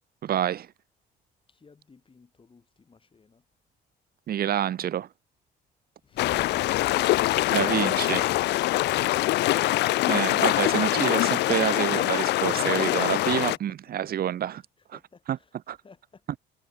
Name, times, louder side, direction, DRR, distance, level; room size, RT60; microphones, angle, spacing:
voice 1, 0.2-0.7 4.3-5.1 7.5-8.3 10.1-14.6 15.3-15.4 15.7-15.8, right 10 dB, 55° right, 1.7 m, -27 dB
voice 2, 1.5-3.5 13.2-14.1 14.4-16.3, left 4 dB, 25° left, 7.0 m, -55 dB
sound 1, 6.1-11.3, left 11 dB, 50° left, 0.8 m, -39 dB
sound 2, 6.2-13.6, left 17 dB, 65° left, 0.4 m, -24 dB
cardioid pair, 100°, 19 cm